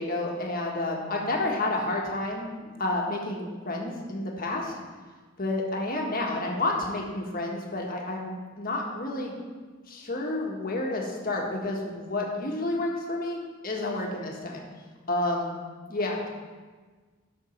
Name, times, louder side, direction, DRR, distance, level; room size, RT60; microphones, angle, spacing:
voice 1, 0.0-4.7 5.4-9.3 9.9-14.6 15.1-15.5 15.9-16.3, left 2 dB, 45° left, -1 dB, 1.6 m, -30 dB
12.0 x 6.5 x 4.5 m, 1.4 s
head